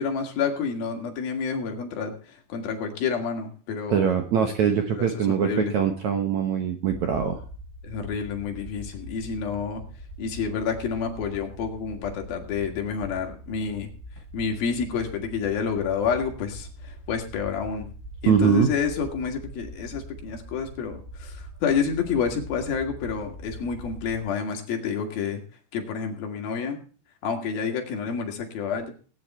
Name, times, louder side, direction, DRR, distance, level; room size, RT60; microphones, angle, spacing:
voice 1, 0.0-2.2 2.5-4.1 4.9-5.7 7.8-9.8 10.2-13.9 14.3-17.9 18.2-25.4 25.7-26.8 27.2-28.9, left 6 dB, 65° left, 3 dB, 3.9 m, -29 dB
voice 2, 3.9-7.4 18.3-18.7, right 7 dB, 65° right, 5 dB, 1.9 m, -22 dB
sound 1, 6.9-24.2, right 1 dB, 90° right, 7.2 m, -42 dB
18.5 x 9.7 x 4.3 m, 0.40 s
omnidirectional pair, 4.8 m